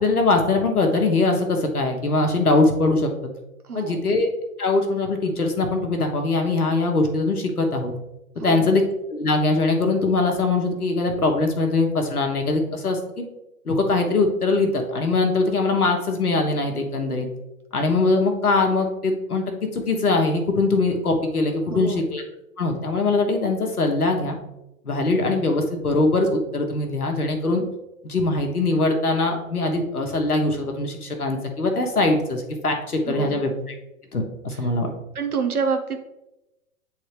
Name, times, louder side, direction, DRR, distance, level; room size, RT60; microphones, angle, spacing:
voice 1, 0.0-3.3 3.7-4.3 4.6-7.9 8.4-8.8 9.1-13.3 13.6-17.3 17.7-19.5 19.7-22.2 22.6-24.4 24.8-27.7 28.0-33.5 34.1-34.9, left 3 dB, 90° left, 3 dB, 1.2 m, -22 dB
voice 2, 3.6-4.0 8.4-8.7 21.7-22.1 33.1-33.4 34.5-34.6 35.1-36.0, right 5 dB, 85° right, 5 dB, 1.0 m, -27 dB
8.6 x 3.9 x 3.3 m, 0.94 s
figure-of-eight pair, 105°, 43 cm